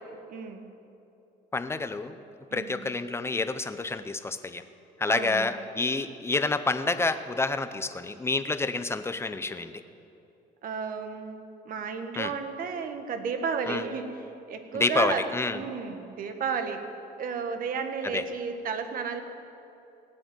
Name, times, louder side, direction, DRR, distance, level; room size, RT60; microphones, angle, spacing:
voice 1, 0.1-0.7 2.5-2.9 5.1-5.5 10.6-15.3 15.5-16.8 17.2-19.2, right 6 dB, 55° right, 6 dB, 1.6 m, -33 dB
voice 2, 1.5-2.2 2.5-4.6 5.0-9.7 12.2-12.3 13.7-13.8 14.7-15.6 18.1-18.2, left 3 dB, 15° left, 11 dB, 0.8 m, -28 dB
17.5 x 7.8 x 9.3 m, 2.7 s
cardioid pair, 110°, 17 cm